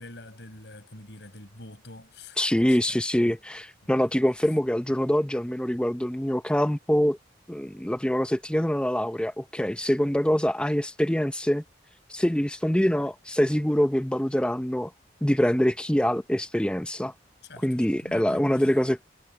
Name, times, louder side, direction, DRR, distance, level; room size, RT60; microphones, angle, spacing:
voice 1, 0.0-3.4 4.0-4.1 17.4-18.7, left 2 dB, 70° left, 5.2 m, -46 dB
voice 2, 2.4-7.2 7.5-11.6 12.1-14.9 15.2-17.1 17.6-19.0, equal, 5° left, 0.6 m, -24 dB
head